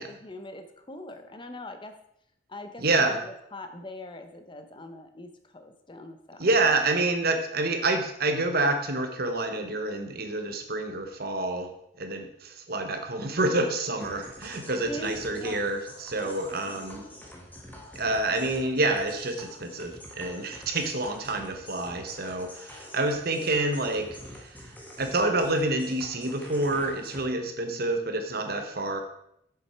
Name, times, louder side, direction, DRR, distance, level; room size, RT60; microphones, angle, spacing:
voice 1, 0.0-2.0 2.5-6.7 14.8-15.7 16.2-16.8, left 2 dB, 25° left, 7 dB, 0.8 m, -42 dB
voice 2, 2.8-3.2 6.4-11.7 12.0-17.1 17.9-29.0, right 2 dB, 50° right, 6 dB, 1.1 m, -28 dB
sound 1, 14.0-27.2, left 1 dB, 10° left, 1.2 m, -46 dB
7.8 x 7.1 x 4.5 m, 0.76 s
head